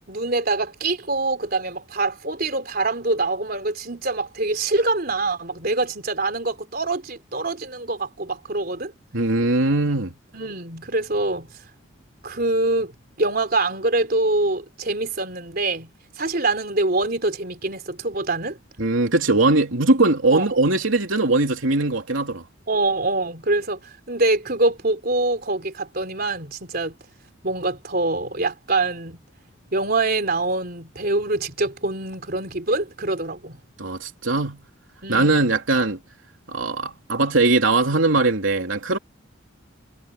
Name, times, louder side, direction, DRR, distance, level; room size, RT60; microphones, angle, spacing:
voice 1, 0.1-8.9 10.3-11.5 12.2-12.9 13.2-15.9 16.2-18.6 20.3-20.5 22.7-27.0 27.4-29.2 29.7-33.6 35.0-35.3, right 2 dB, 50° right, 3.8 m, -24 dB
voice 2, 9.1-10.1 18.8-22.4 33.8-34.6 35.1-36.0 36.5-39.0, right 2 dB, 75° right, 3.2 m, -20 dB
head